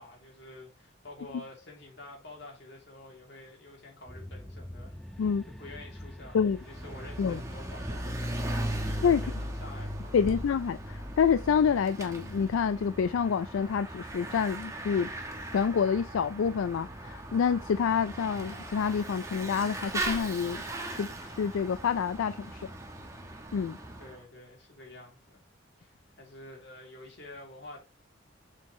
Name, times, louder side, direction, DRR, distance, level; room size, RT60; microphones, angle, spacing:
voice 1, 0.0-10.4 24.0-25.4 25.8-27.8, left 2 dB, 55° left, 2.9 m, -49 dB
sound 1, 4.1-13.3, left 1 dB, ahead, 0.5 m, -49 dB
Bicycle / Mechanisms, 6.6-24.2, right 1 dB, 15° right, 1.1 m, -38 dB
voice 2, 10.1-15.1 15.5-20.6 20.9-22.7 23.5-23.8, left 6 dB, 80° left, 0.3 m, -27 dB
7.2 x 6.4 x 3.1 m
head